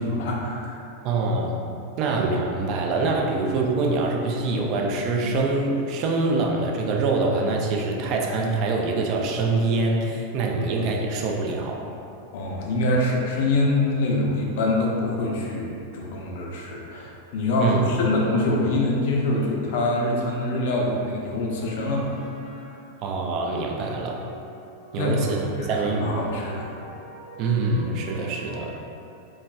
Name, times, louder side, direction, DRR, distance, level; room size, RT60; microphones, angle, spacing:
voice 1, 0.0-0.9 12.3-22.1 22.4-22.6 25.0-25.1 25.6-26.7, left 2 dB, 65° left, -1 dB, 0.5 m, -25 dB
voice 2, 1.0-1.6 2.0-11.8 17.6-17.9 23.0-24.2 24.9-26.2 27.4-28.7, right 3 dB, 45° right, 0 dB, 0.4 m, -24 dB
sound 1, 21.3-23.1 23.8-28.7, right 2 dB, 25° right, 0.8 m, -44 dB
3.9 x 2.1 x 2.3 m, 2.7 s
hypercardioid pair, 105°, 0 cm